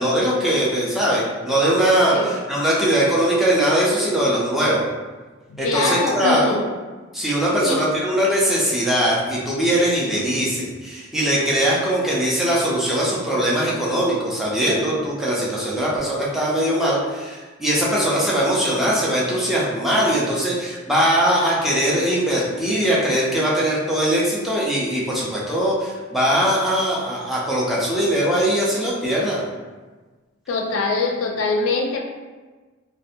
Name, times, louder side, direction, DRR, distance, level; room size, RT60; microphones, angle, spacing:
voice 1, 0.0-4.8 5.6-6.6 7.1-29.4, right 1 dB, ahead, -6 dB, 0.4 m, -21 dB
voice 2, 5.5-6.7 7.6-7.9 30.5-32.0, left 3 dB, 70° left, 2 dB, 0.3 m, -23 dB
2.5 x 2.1 x 2.5 m, 1.3 s
head